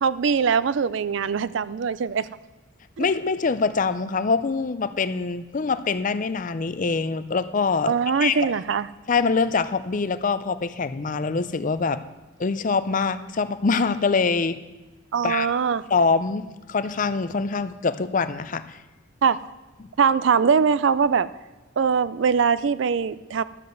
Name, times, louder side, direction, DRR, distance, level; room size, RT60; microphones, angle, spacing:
voice 1, 0.0-2.3 3.0-3.1 7.9-8.9 15.1-15.8 19.2-19.4 20.0-21.3 21.8-23.4, right 6 dB, 60° right, 16 dB, 0.4 m, -22 dB
voice 2, 3.0-8.4 9.1-12.0 12.4-14.6 15.2-15.5 15.9-18.8, left 4 dB, 40° left, 13 dB, 0.5 m, -24 dB
12.0 x 5.5 x 7.7 m, 1.1 s
head